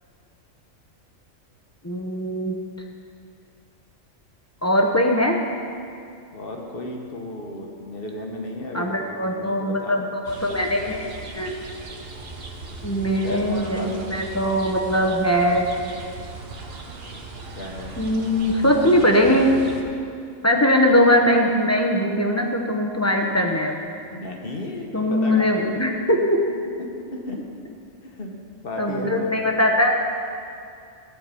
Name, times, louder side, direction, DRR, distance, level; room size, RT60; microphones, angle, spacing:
voice 1, 1.8-2.6 4.6-5.4 8.7-11.5 12.8-15.7 18.0-19.5 20.4-23.7 24.9-26.5 28.8-29.9, equal, 15° left, 0 dB, 0.7 m, -21 dB
voice 2, 6.3-10.0 13.1-13.9 17.5-17.9 18.7-19.2 23.2-23.3 24.1-25.9 26.8-27.4 28.0-28.3 28.6-29.5, left 1 dB, 50° left, 1 dB, 1.3 m, -34 dB
sound 1, 10.2-19.8, right 3 dB, 55° right, 1.1 m, -38 dB
12.5 x 4.7 x 8.3 m, 2.4 s
omnidirectional pair, 1.3 m